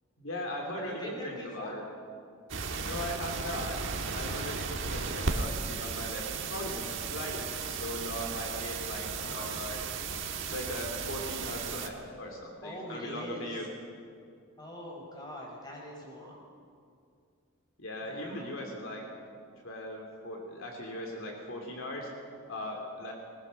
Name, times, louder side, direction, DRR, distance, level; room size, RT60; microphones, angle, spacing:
voice 1, 0.2-1.8 2.8-3.8 4.1-6.8 7.1-9.9 10.4-13.6 17.8-19.0 19.6-22.1 22.5-23.1, left 1 dB, 70° left, 1 dB, 3.0 m, -39 dB
voice 2, 0.7-1.7 3.1-3.4 9.2-9.5 12.6-13.6 14.6-16.4 18.0-18.4, equal, 20° left, -1 dB, 4.9 m, -43 dB
sound 1, 2.5-11.9, right 5 dB, 65° right, 1.5 m, -35 dB
20.0 x 20.0 x 6.4 m, 2.3 s
head